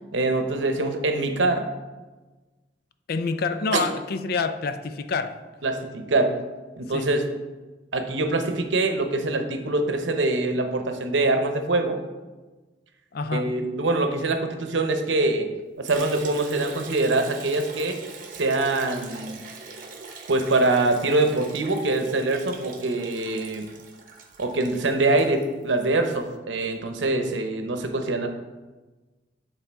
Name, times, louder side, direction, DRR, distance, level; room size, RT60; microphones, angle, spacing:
voice 1, 0.1-1.7 3.7-3.8 5.6-6.3 6.8-7.3 7.9-12.0 13.3-15.5 15.8-18.0 18.3-19.4 20.3-23.7 24.4-28.3, right 2 dB, 80° right, 0.8 m, -24 dB
voice 2, 3.1-5.3 6.9-7.1 13.1-13.5, left 4 dB, 55° left, 0.4 m, -27 dB
Liquid, 15.9-26.0, right 4 dB, 50° right, 0.9 m, -42 dB
8.3 x 3.9 x 4.5 m
head